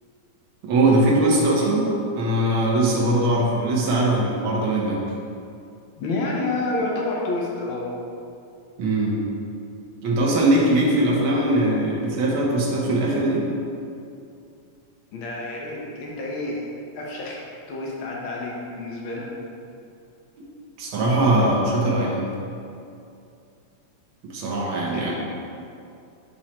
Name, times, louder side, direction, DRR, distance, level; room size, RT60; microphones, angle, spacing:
voice 1, 0.6-1.9 2.2-5.0 8.8-9.2 10.0-13.5 20.8-22.2 24.2-25.1, right 1 dB, 60° right, -3 dB, 1.4 m, -21 dB
voice 2, 5.9-7.9 15.1-16.7 16.9-17.4 17.7-19.3 24.9-25.1, left 2 dB, 65° left, -3 dB, 1.3 m, -29 dB
8.8 x 3.1 x 4.3 m, 2.5 s
omnidirectional pair, 3.3 m